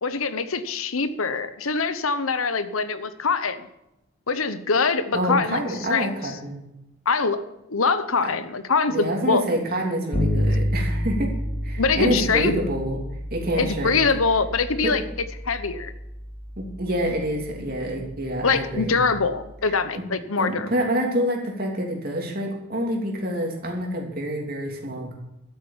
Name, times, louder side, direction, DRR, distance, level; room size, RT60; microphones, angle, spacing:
voice 1, 0.0-3.6 4.3-5.6 5.9-6.3 7.1-7.4 7.7-9.4 10.5-10.6 11.8-12.5 13.6-15.0 15.4-15.9 18.4-20.7, left 4 dB, 90° left, 12 dB, 1.0 m, -23 dB
voice 2, 5.1-6.6 8.9-11.3 11.6-13.0 13.3-14.0 14.8-14.9 16.6-19.0 19.7-20.0 20.4-25.2, equal, 45° right, 1 dB, 3.0 m, -27 dB
Bass guitar, 10.1-19.8, equal, 30° left, 2.4 m, -30 dB
12.5 x 8.6 x 7.3 m, 0.90 s
head